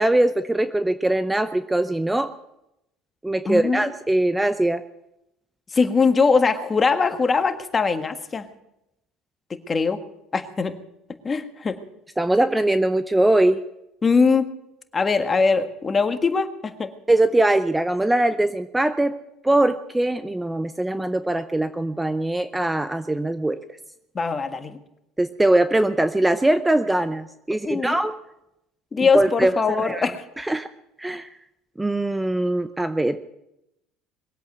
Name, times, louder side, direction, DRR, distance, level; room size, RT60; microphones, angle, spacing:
voice 1, 0.0-2.3 3.2-4.8 12.2-13.6 17.1-19.2 19.4-23.6 25.2-28.1 29.1-30.1 30.4-30.7 31.0-31.3 31.8-33.2, right 1 dB, 10° right, 11 dB, 0.7 m, -21 dB
voice 2, 3.4-3.8 5.7-8.5 9.5-10.0 10.3-10.8 11.2-11.8 14.0-14.5 14.9-16.9 24.1-24.8 27.6-28.0 28.9-30.2, left 4 dB, 30° left, 8 dB, 1.6 m, -21 dB
21.5 x 8.3 x 8.0 m, 0.86 s
supercardioid pair, 90°, 0 cm